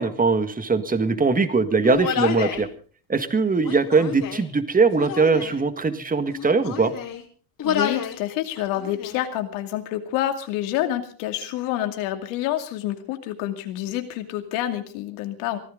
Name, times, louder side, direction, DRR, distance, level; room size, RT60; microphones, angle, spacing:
voice 1, 0.0-2.7 3.1-6.9, right 4 dB, 20° right, 10 dB, 1.8 m, -21 dB
Human voice, 1.8-2.7 3.6-4.5 4.9-5.6 6.3-7.2 7.6-8.2 8.6-9.2, left 8 dB, 45° left, 3.5 m, -29 dB
voice 2, 7.6-15.6, left 13 dB, 80° left, 6 dB, 2.6 m, -28 dB
24.0 x 15.0 x 3.8 m, 0.41 s
supercardioid pair, 105°, 46 cm